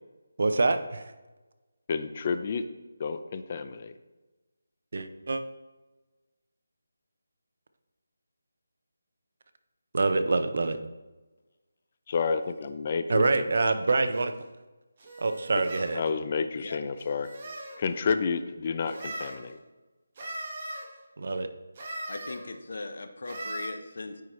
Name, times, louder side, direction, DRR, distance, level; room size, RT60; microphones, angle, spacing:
voice 1, 0.4-1.1 4.9-5.4 9.9-10.8 13.1-14.3 15.2-16.0 21.2-21.5, right 3 dB, 55° right, 0.6 m, -26 dB
voice 2, 1.9-2.6 3.0-3.9 12.1-13.4 15.9-17.3 17.8-19.6, left 5 dB, 30° left, 0.4 m, -30 dB
sound 1, 14.1-14.3 15.0-16.0 17.0-17.8 18.9-19.4 20.1-20.8 21.7-22.4 23.2-23.7, right 1 dB, 35° right, 1.4 m, -39 dB
voice 3, 22.1-24.2, left 2 dB, 60° left, 0.7 m, -39 dB
9.5 x 4.5 x 3.1 m
figure-of-eight pair, 170°, 0 cm